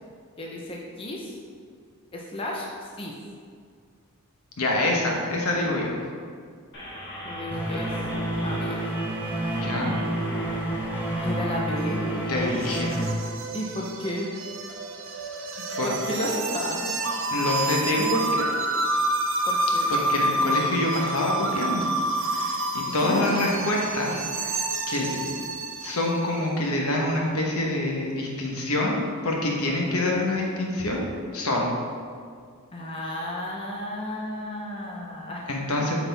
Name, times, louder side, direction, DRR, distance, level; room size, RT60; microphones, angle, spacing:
voice 1, 0.4-1.4 2.1-2.7 3.0-3.1 7.2-7.9 8.4-8.8 9.5-9.8 11.2-12.0 13.5-14.3 15.8-16.9 19.5-19.9 22.9-23.2 32.7-35.5, left 1 dB, 25° left, -2 dB, 0.6 m, -33 dB
voice 2, 4.6-6.0 9.6-9.9 12.3-12.9 15.8-15.9 17.3-18.5 19.9-21.9 22.2-24.6 24.9-25.4 25.8-31.0 31.3-31.7 35.5-36.0, left 1 dB, 75° left, -1 dB, 1.1 m, -26 dB
sound 1, 6.7-12.6, equal, 50° left, 1.6 m, -38 dB
sound 2, 7.5-13.1, right 1 dB, 10° right, 1.0 m, -29 dB
sound 3, 11.8-26.4, right 1 dB, 60° right, 0.7 m, -28 dB
8.1 x 4.2 x 3.5 m, 2.1 s
head